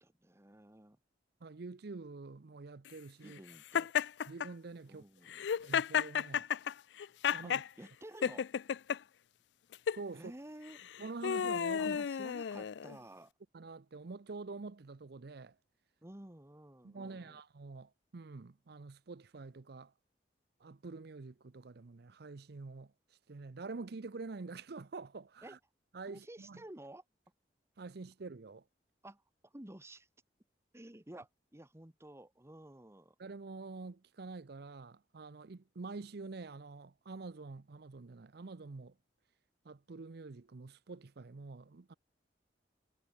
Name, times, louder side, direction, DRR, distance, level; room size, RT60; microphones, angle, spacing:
voice 1, 0.0-1.0 3.2-3.9 4.9-5.5 7.4-7.5 7.8-8.5 10.1-10.8 11.8-13.3 16.0-17.4 25.4-25.6 26.1-27.0 29.0-30.1 30.7-33.1, right 1 dB, 15° right, 1.3 m, -52 dB
voice 2, 1.4-3.4 4.3-5.0 5.6-6.5 7.3-7.6 9.9-10.3 11.0-12.0 13.5-15.6 16.8-19.9 20.6-22.9 23.3-25.6 25.9-26.6 27.8-28.6 33.2-39.0 39.6-41.9, right 3 dB, 65° right, 0.6 m, -47 dB
Laughter, 3.7-4.5 5.3-7.7 8.2-9.0 9.7-10.0 10.8-13.0, left 7 dB, 75° left, 0.4 m, -33 dB
head